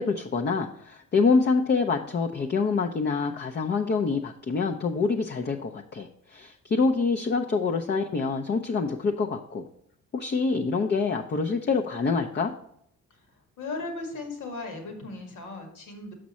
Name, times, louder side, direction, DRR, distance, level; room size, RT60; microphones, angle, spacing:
voice 1, 0.0-9.6 10.1-12.5, left 4 dB, 35° left, 3 dB, 0.6 m, -26 dB
voice 2, 13.6-16.1, left 3 dB, 85° left, 4 dB, 1.9 m, -36 dB
6.3 x 5.9 x 4.2 m, 0.72 s
cardioid pair, 90°, 30 cm